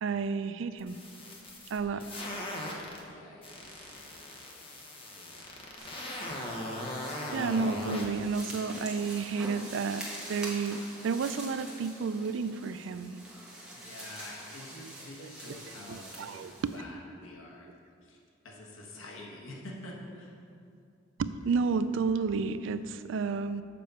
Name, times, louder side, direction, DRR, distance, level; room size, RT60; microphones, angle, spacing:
voice 1, 0.0-1.0 1.7-2.0 7.3-13.2 15.2-15.5 15.9-16.8 21.2-23.6, right 5 dB, 65° right, 12 dB, 0.3 m, -31 dB
sound 1, 0.8-3.0 3.4-8.1, left 1 dB, 25° left, 1.0 m, -39 dB
voice 2, 1.8-2.5 3.0-4.6 5.0-5.7 6.1-6.4 13.7-16.4 16.7-17.7 18.0-18.2 18.4-20.3, left 1 dB, 80° left, -2 dB, 1.2 m, -48 dB
sound 2, 5.8-16.8, right 1 dB, 5° right, 1.2 m, -45 dB
6.9 x 5.2 x 6.7 m, 2.4 s
head